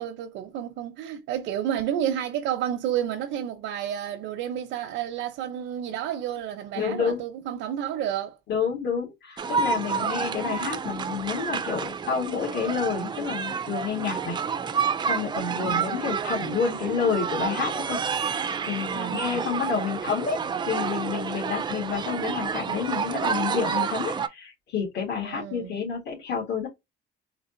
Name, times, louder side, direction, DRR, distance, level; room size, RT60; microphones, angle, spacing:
voice 1, 0.0-8.4 15.5-15.9 18.9-19.4 25.1-25.8, right 10 dB, 85° right, 0.8 m, -31 dB
voice 2, 6.7-7.2 8.5-14.4 15.1-18.0 18.7-20.4 20.7-26.7, left 6 dB, 60° left, 2.1 m, -29 dB
sound 1, 9.4-24.3, right 6 dB, 25° right, 0.4 m, -29 dB
4.1 x 2.9 x 2.6 m
cardioid pair, 155°, 19 cm